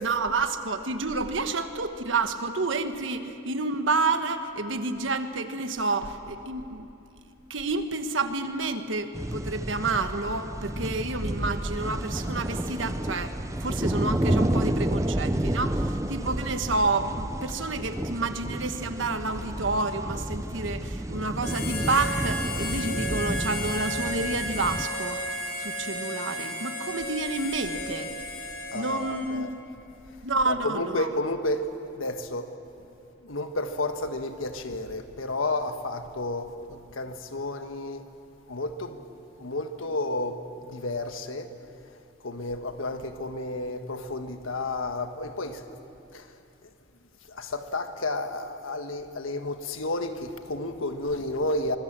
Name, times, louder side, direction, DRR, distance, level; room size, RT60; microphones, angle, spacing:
voice 1, 0.0-6.9 7.5-25.2 25.6-28.2 28.7-29.5 30.2-31.1, right 3 dB, 75° right, 1.3 m, -29 dB
sound 1, 9.1-24.9, right 1 dB, 15° right, 0.6 m, -30 dB
Harmonica, 21.4-29.4, equal, 45° left, 3.3 m, -34 dB
voice 2, 28.7-29.5 30.4-31.7 31.9-32.6 33.2-38.0 38.5-39.0 39.4-41.5 42.2-45.6 46.1-46.3 47.3-51.8, left 2 dB, 85° left, 1.5 m, -31 dB
25.0 x 22.0 x 7.5 m
head